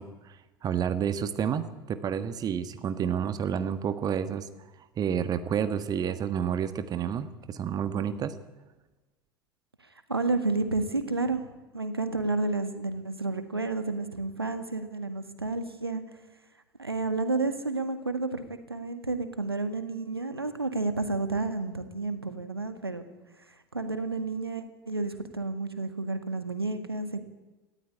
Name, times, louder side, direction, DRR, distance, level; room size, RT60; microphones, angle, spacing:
voice 1, 0.0-4.5 5.0-8.3, right 8 dB, 30° right, 11 dB, 1.5 m, -30 dB
voice 2, 10.1-16.0 16.8-23.0 23.5-27.2, right 3 dB, 85° right, 9 dB, 1.7 m, -31 dB
18.5 x 14.5 x 10.0 m, 1.1 s
figure-of-eight pair, 75°, 13 cm